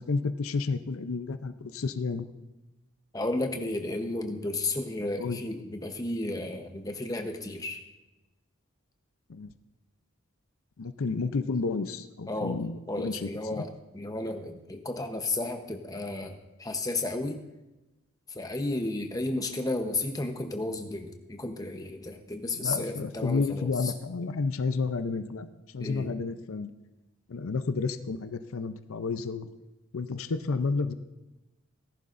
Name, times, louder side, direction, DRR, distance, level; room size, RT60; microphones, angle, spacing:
voice 1, 0.0-2.3 5.2-5.4 9.3-9.5 10.8-13.6 22.5-26.7 27.3-29.5 29.9-30.9, left 4 dB, 75° left, 11 dB, 0.5 m, -31 dB
voice 2, 3.1-7.8 12.3-12.6 12.9-17.4 18.3-23.9 25.8-26.1, left 2 dB, 15° left, 5 dB, 0.8 m, -33 dB
18.0 x 11.0 x 2.6 m, 1.0 s
head